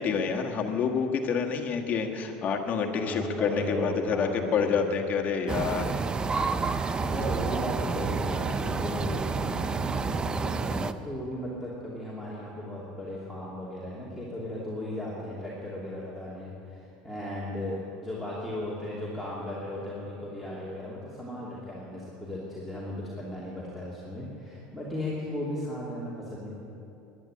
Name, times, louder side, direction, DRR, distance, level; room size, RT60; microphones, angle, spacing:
voice 1, 0.0-5.9, left 6 dB, 40° left, 2 dB, 1.6 m, -28 dB
voice 2, 2.9-4.9 5.4-5.5 6.9-26.5, left 1 dB, 5° right, -7 dB, 2.8 m, -36 dB
sound 1, 5.5-10.9, right 4 dB, 20° right, 0.5 m, -29 dB
11.0 x 10.5 x 9.8 m, 2.8 s
supercardioid pair, 115°, 4 cm